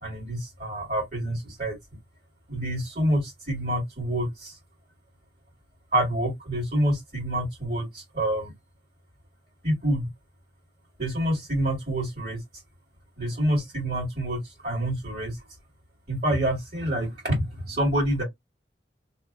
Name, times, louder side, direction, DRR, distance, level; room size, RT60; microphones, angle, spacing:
voice 1, 0.0-1.8 2.5-4.6 5.9-8.5 9.6-10.1 11.0-12.4 13.2-15.4 16.1-18.2, right 1 dB, 45° right, 1.8 m, -27 dB
3.0 x 2.1 x 3.5 m
head